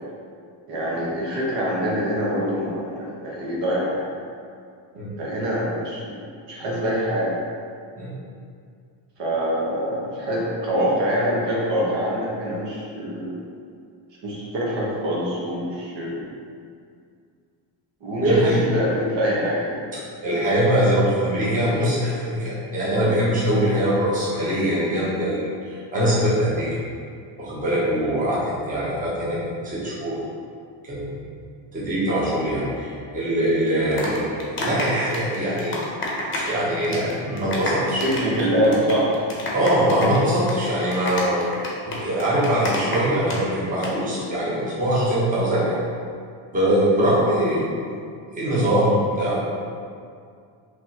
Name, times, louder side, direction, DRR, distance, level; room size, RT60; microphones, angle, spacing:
voice 1, 0.7-4.1 5.2-7.3 9.2-13.4 14.2-16.2 18.0-19.8 28.1-28.2 34.0-34.1 38.0-39.1 41.5-41.7 46.9-47.1, equal, 65° right, -5 dB, 1.2 m, -25 dB
voice 2, 18.2-18.6 20.2-26.7 27.4-29.4 29.6-30.2 30.8-31.1 31.7-35.8 36.4-38.1 39.5-41.5 41.9-45.8 46.5-47.8 48.3-49.4, equal, 20° right, -8 dB, 1.0 m, -22 dB
sound 1, 33.7-36.6 36.8-37.1 37.4-43.4 43.7-43.9, left 2 dB, 25° left, 0.7 m, -29 dB
5.2 x 3.1 x 2.9 m, 2.3 s
cardioid pair, 155°, 45 cm